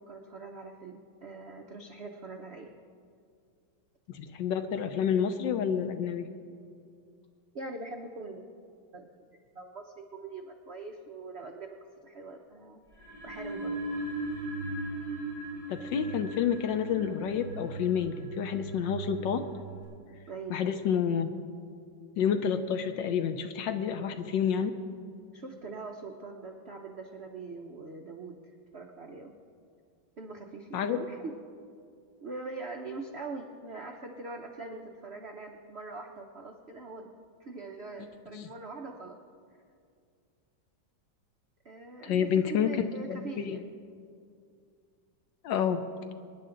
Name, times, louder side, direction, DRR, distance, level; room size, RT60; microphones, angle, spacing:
voice 1, 0.0-2.7 7.5-8.4 8.9-9.2 9.5-11.8 12.0-12.8 13.2-13.7 20.3-20.6 25.3-28.4 28.7-29.3 30.2-31.4 32.2-37.1 37.4-39.2 41.6-43.6, right 3 dB, 65° right, 3 dB, 0.6 m, -42 dB
voice 2, 4.1-6.3 15.7-19.4 20.5-21.3 22.2-24.7 30.7-31.1 38.3-38.5 42.0-43.6 45.4-45.8, left 8 dB, 70° left, 9 dB, 1.2 m, -29 dB
sound 1, 12.9-19.8, right 2 dB, 50° left, 5.3 m, -38 dB
24.0 x 10.5 x 3.9 m, 2.3 s
omnidirectional pair, 2.3 m